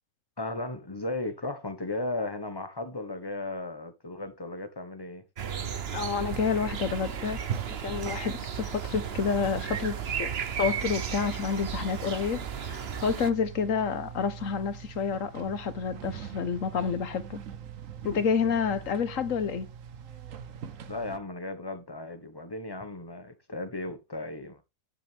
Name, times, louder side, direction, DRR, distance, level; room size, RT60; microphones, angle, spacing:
voice 1, 0.4-5.2 20.9-24.6, left 2 dB, 15° left, 1.3 m, -35 dB
sound 1, 5.4-13.3, right 7 dB, 50° right, 1.1 m, -35 dB
voice 2, 5.9-7.4 7.8-10.3 10.6-17.4 18.0-19.7, left 6 dB, 65° left, 1.5 m, -29 dB
sound 2, 6.3-21.2, right 9 dB, 65° right, 1.3 m, -41 dB
10.5 x 7.7 x 3.5 m
omnidirectional pair, 1.5 m